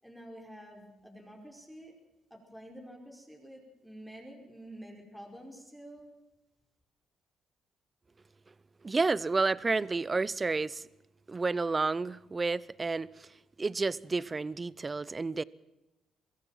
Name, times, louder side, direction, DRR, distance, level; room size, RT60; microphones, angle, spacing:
voice 1, 0.0-1.9 2.3-6.1, equal, ahead, 5.3 m, -49 dB
voice 2, 8.8-10.8 11.3-13.3 13.6-15.4, right 3 dB, 25° right, 0.7 m, -30 dB
23.5 x 15.0 x 7.5 m
cardioid pair, 90°, 0 cm